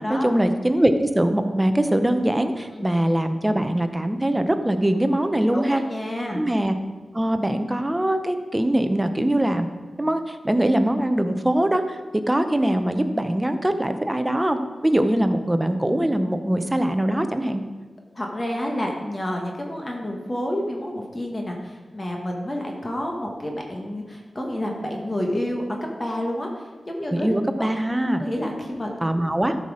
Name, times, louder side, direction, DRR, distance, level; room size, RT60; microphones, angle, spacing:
voice 1, 0.1-5.8 6.3-6.7 7.1-9.7 10.0-12.0 12.3-17.6 27.1-28.3 29.0-29.6, right 1 dB, 15° right, 8 dB, 0.8 m, -22 dB
voice 2, 5.5-6.4 18.1-25.6 26.0-26.5 26.9-27.3 27.6-27.7 28.2-28.9, left 1 dB, 30° left, 0 dB, 1.4 m, -29 dB
13.0 x 5.8 x 4.9 m, 1.3 s
wide cardioid pair, 85°, 0 cm